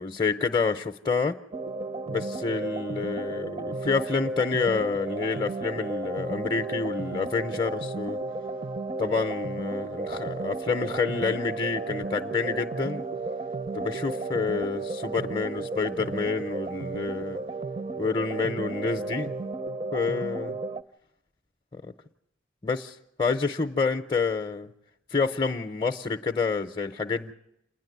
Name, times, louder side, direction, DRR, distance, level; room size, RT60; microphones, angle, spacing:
voice 1, 0.0-1.4 2.1-8.2 9.0-13.0 13.7-17.4 18.0-19.3 19.9-20.6 21.7-21.9 22.6-24.7 25.1-27.3, left 4 dB, 25° left, 0.7 m, -28 dB
sound 1, 1.5-20.8, right 3 dB, 30° right, 0.7 m, -33 dB
28.0 x 10.5 x 9.3 m
head